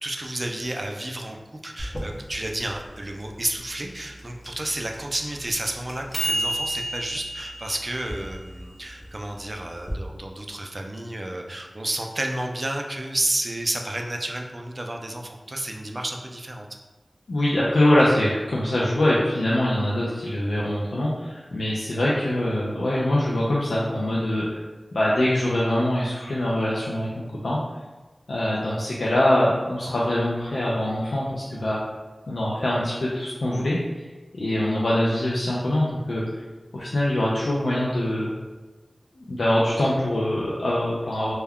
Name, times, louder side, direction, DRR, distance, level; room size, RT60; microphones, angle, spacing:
voice 1, 0.0-16.7, right 1 dB, 45° right, 2 dB, 0.4 m, -31 dB
sound 1, 1.8-9.9, right 1 dB, 15° left, 0.6 m, -33 dB
voice 2, 17.3-24.6 24.9-27.6 28.3-31.8 32.3-33.8 34.3-36.2 36.7-38.3 39.2-41.3, left 1 dB, 90° left, -6 dB, 0.4 m, -23 dB
2.2 x 2.2 x 3.5 m, 1.2 s
wide cardioid pair, 45°, 0 cm